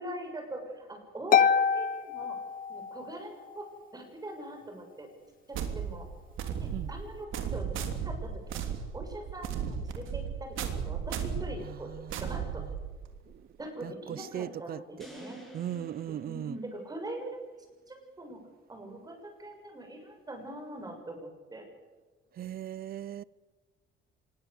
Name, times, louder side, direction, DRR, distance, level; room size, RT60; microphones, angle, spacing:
voice 1, 0.0-2.4 2.7-3.7 3.9-5.1 5.5-6.1 6.6-8.6 8.9-10.6 10.8-11.9 12.2-12.6 13.6-15.4 16.2-17.5 17.9-18.4 18.7-21.6, right 1 dB, 20° right, 6.7 m, -42 dB
Harp, 1.3-3.2, left 7 dB, 45° left, 1.0 m, -26 dB
sound 1, 5.5-13.2, right 7 dB, 85° right, 3.3 m, -35 dB
voice 2, 11.6-12.8 13.3-13.5 13.8-15.1 15.5-16.6 22.3-23.2, right 10 dB, 50° right, 0.8 m, -39 dB
sound 2, 15.0-17.3, right 1 dB, ahead, 7.3 m, -50 dB
25.5 x 21.5 x 8.1 m
cardioid pair, 140°, 20 cm